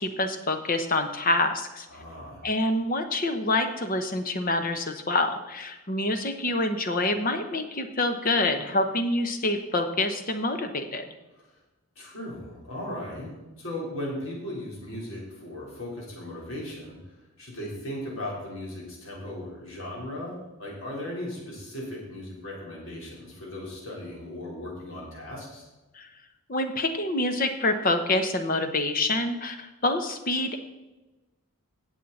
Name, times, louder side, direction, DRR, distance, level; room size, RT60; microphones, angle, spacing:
voice 1, 0.0-1.9 2.4-11.0 25.9-26.1 26.5-30.6, left 2 dB, 40° left, 7 dB, 1.0 m, -26 dB
voice 2, 1.9-2.5 11.3-11.5 12.0-25.7, left 1 dB, 60° left, -3 dB, 4.1 m, -37 dB
16.5 x 7.4 x 4.2 m, 1.1 s
head